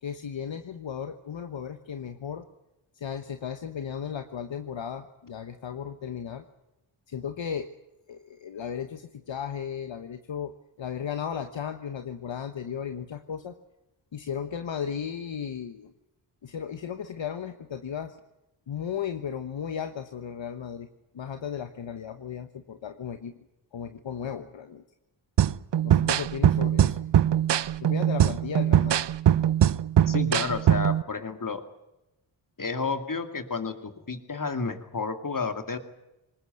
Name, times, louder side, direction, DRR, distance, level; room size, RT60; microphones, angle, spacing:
voice 1, 0.0-2.4 2.9-6.4 7.1-7.7 8.1-10.5 10.8-13.6 14.1-15.9 16.4-18.2 18.7-20.9 21.1-23.3 23.7-24.8 25.8-27.0 27.8-29.1, left 8 dB, 65° left, 8 dB, 1.2 m, -35 dB
sound 1, 25.4-31.0, right 11 dB, 60° right, 0.7 m, -22 dB
voice 2, 30.1-31.6 32.6-35.8, left 4 dB, 40° left, 8 dB, 2.5 m, -31 dB
20.5 x 19.5 x 9.5 m, 0.96 s
cardioid pair, 50°, 48 cm